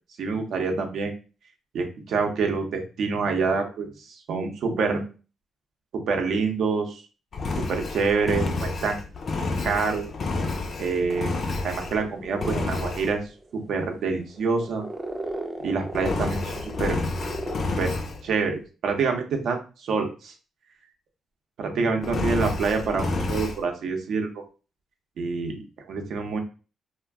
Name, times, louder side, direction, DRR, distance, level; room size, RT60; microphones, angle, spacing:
voice 1, 0.2-1.1 1.7-5.0 5.9-7.0 7.6-9.0 9.6-10.1 10.8-11.3 11.6-14.8 15.6-17.0 17.8-17.9 18.2-20.3 21.6-24.4 25.2-25.6 25.9-26.4, right 4 dB, 70° right, 4 dB, 0.7 m, -26 dB
Engine, 7.3-12.0 12.4-13.1 15.9-18.2 22.0-23.6, left 3 dB, 50° left, 0.4 m, -29 dB
sound 1, 11.9-18.3, right 2 dB, 20° right, 0.5 m, -37 dB
2.3 x 2.2 x 3.4 m, 0.34 s
cardioid pair, 95°, 0 cm